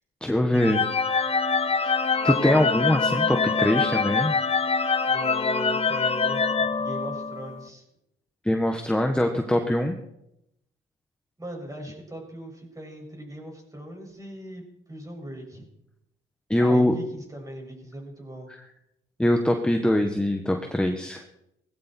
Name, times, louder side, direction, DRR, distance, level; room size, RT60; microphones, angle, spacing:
voice 1, 0.2-0.8 1.8-4.4 8.4-10.0 16.5-16.9 19.2-21.2, left 1 dB, 5° left, 4 dB, 1.5 m, -23 dB
sound 1, 0.6-7.6, left 4 dB, 30° left, 1.1 m, -24 dB
voice 2, 5.1-7.8 11.4-15.6 16.6-18.5, right 1 dB, 15° right, 1 dB, 6.6 m, -39 dB
19.0 x 15.0 x 4.5 m, 0.82 s
cardioid pair, 90°, 20 cm